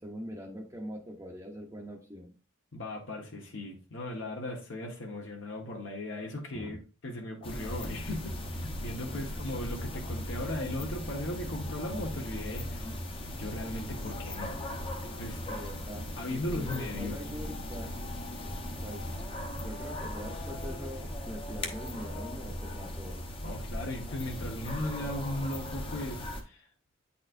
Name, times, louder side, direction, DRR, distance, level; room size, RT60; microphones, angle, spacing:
voice 1, 0.0-2.3 6.5-6.8 9.1-9.3 15.5-17.9 18.8-19.2 19.6-23.2, equal, 15° right, 0.7 m, -43 dB
voice 2, 2.7-6.8 7.0-13.0 13.4-14.6 15.2-15.4 16.2-17.2 23.4-26.7, left 1 dB, 65° left, 1.2 m, -37 dB
sound 1, 7.4-26.4, left 1 dB, 25° left, 0.8 m, -38 dB
9.1 x 4.2 x 2.6 m
head